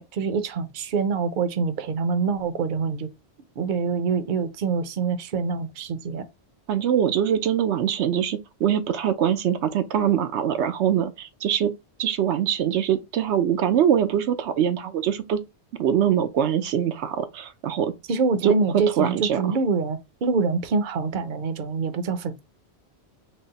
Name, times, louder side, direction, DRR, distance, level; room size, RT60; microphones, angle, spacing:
voice 1, 0.0-3.1 3.6-6.3 18.1-22.4, right 4 dB, 55° right, 0.7 m, -25 dB
voice 2, 6.7-11.7 12.0-15.4 15.8-17.9 18.4-19.4, right 9 dB, 85° right, 0.9 m, -23 dB
4.0 x 2.0 x 3.8 m
omnidirectional pair, 1.1 m